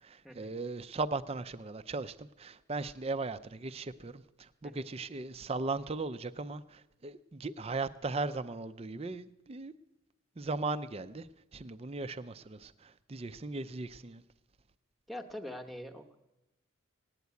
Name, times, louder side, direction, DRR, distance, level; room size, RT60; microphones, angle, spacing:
voice 1, 0.0-9.7 10.4-14.2, right 3 dB, 30° right, 12 dB, 0.4 m, -38 dB
voice 2, 15.1-16.2, left 1 dB, ahead, 5 dB, 0.9 m, -44 dB
18.0 x 9.3 x 8.3 m, 0.99 s
head